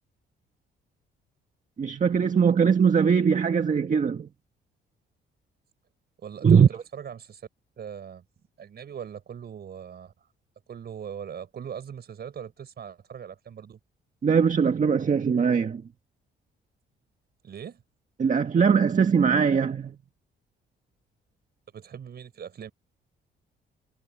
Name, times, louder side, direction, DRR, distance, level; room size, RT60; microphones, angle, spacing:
voice 1, 1.8-4.3 6.4-6.7 14.2-15.8 18.2-19.9, right 6 dB, 40° right, 1.7 m, -21 dB
voice 2, 6.2-7.5 7.8-8.2 8.6-10.3 10.7-13.8 17.4-17.8 21.7-22.7, right 8 dB, 55° right, 4.8 m, -40 dB
cardioid pair, 90°, 20 cm